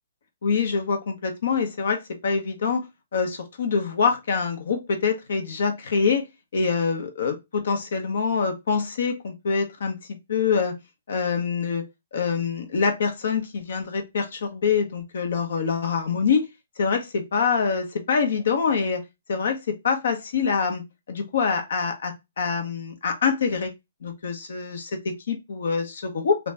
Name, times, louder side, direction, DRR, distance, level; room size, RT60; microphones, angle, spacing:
voice 1, 0.4-2.9 3.1-6.2 6.5-10.0 10.3-10.7 11.1-11.8 12.1-16.4 16.8-19.0 19.3-20.8 21.1-23.7 24.0-26.4, left 5 dB, 65° left, 6 dB, 1.1 m, -25 dB
2.9 x 2.8 x 3.4 m, 0.22 s
hypercardioid pair, 160°, 0 cm